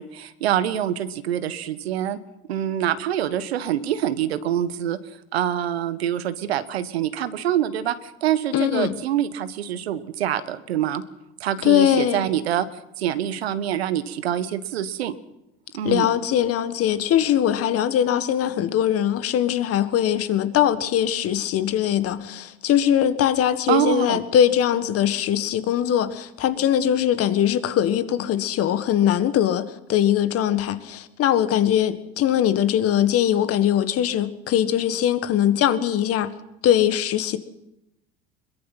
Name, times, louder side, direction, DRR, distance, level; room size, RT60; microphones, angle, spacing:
voice 1, 0.0-2.2 2.5-5.0 5.3-11.0 11.4-12.7 13.0-15.1 15.7-16.1 23.7-24.2, right 10 dB, 85° right, 1.2 m, -25 dB
voice 2, 8.5-8.9 11.6-12.3 15.8-36.3 36.6-37.4, left 10 dB, 50° left, 1.7 m, -21 dB
22.0 x 21.5 x 5.9 m
hypercardioid pair, 80°, 30 cm